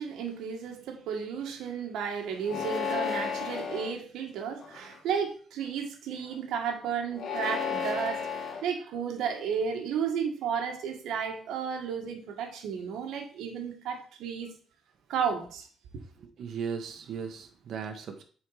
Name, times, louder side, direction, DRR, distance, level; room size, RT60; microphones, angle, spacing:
voice 1, 0.0-14.5 15.1-15.7, right 7 dB, 85° right, 1.5 m, -33 dB
sound 1, 2.4-3.9 4.6-5.1 7.1-8.6, left 6 dB, 60° left, 2.0 m, -33 dB
voice 2, 16.2-18.2, right 6 dB, 65° right, 1.2 m, -37 dB
7.6 x 4.4 x 4.9 m
cardioid pair, 90°, 0 cm